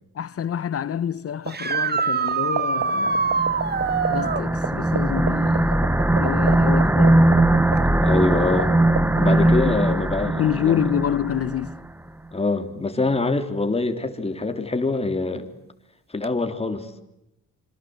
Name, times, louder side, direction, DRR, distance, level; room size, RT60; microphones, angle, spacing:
voice 1, 0.1-3.5 4.1-5.8 6.1-7.4 9.3-11.8, left 9 dB, 50° left, 1.3 m, -27 dB
sound 1, 1.5-4.5 7.8-7.9 9.9-10.0 16.2-16.3, right 5 dB, 35° right, 1.8 m, -24 dB
sound 2, 1.5-2.0 2.3-4.4 4.6-4.7 4.9-8.6 8.9-9.2, right 9 dB, 60° right, 2.2 m, -25 dB
sound 3, 3.1-11.8, right 1 dB, 5° right, 1.2 m, -20 dB
voice 2, 8.0-8.7 9.1-10.8 12.3-15.5 16.1-17.0, left 3 dB, 20° left, 3.6 m, -24 dB
26.5 x 26.5 x 8.1 m
cardioid pair, 90°, 30 cm